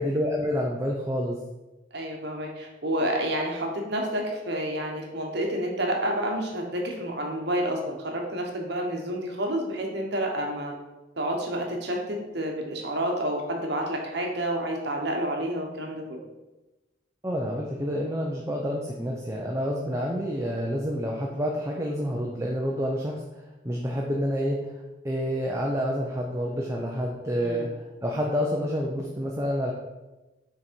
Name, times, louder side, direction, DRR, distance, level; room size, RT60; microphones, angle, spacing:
voice 1, 0.0-1.4 17.2-23.2 23.6-24.6 25.0-29.7, equal, 15° right, -1 dB, 0.5 m, -28 dB
voice 2, 1.9-10.7 11.2-16.2 27.3-27.7, right 1 dB, 60° right, 1 dB, 1.1 m, -29 dB
6.1 x 4.1 x 4.5 m, 1.1 s
head